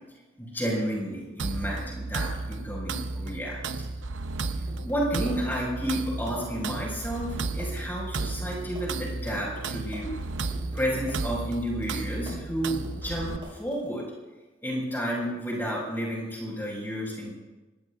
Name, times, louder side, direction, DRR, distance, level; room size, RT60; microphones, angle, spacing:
voice 1, 0.4-3.6 4.8-10.1 10.4-14.0 14.6-17.4, equal, 10° left, -4 dB, 5.3 m, -31 dB
sound 1, 1.4-13.4, right 3 dB, 75° right, 0.8 m, -33 dB
sound 2, 4.7-13.9, right 1 dB, 25° right, 6.4 m, -46 dB
24.5 x 19.5 x 2.5 m, 1.2 s
head